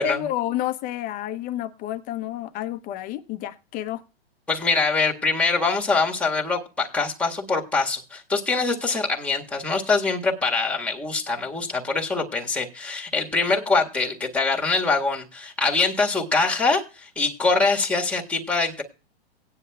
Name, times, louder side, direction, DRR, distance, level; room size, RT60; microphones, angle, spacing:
voice 1, 0.0-4.0, left 12 dB, 25° left, 0.9 m, -30 dB
voice 2, 4.5-18.8, left 3 dB, 5° left, 1.7 m, -24 dB
18.0 x 9.8 x 2.4 m
hypercardioid pair, 135°, 32 cm